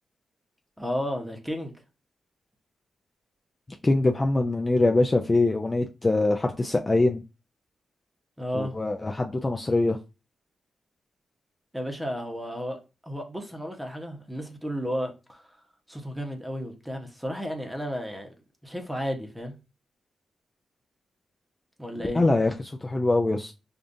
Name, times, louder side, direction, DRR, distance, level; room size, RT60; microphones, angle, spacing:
voice 1, 0.8-1.7 8.4-8.7 11.7-12.8 13.0-15.4 15.9-18.3 18.6-19.5 21.8-22.2, equal, 5° right, 0.9 m, -33 dB
voice 2, 3.8-7.2 8.5-10.0 22.1-23.5, left 2 dB, 25° left, 0.4 m, -23 dB
5.2 x 2.5 x 2.5 m
cardioid pair, 80°, 0 cm